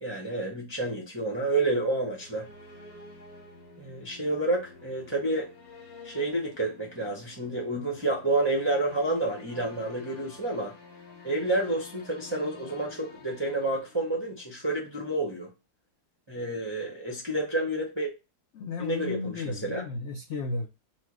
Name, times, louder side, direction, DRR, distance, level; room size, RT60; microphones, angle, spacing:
voice 1, 0.0-2.5 3.8-5.5 6.0-10.7 11.2-15.5 16.3-18.1 18.8-19.4 19.6-19.8, right 2 dB, 30° right, 0.4 m, -29 dB
sound 1, 1.8-14.6, left 4 dB, 45° left, 0.8 m, -50 dB
voice 2, 18.5-20.7, left 3 dB, 80° left, 0.6 m, -34 dB
4.4 x 2.2 x 4.7 m
omnidirectional pair, 2.0 m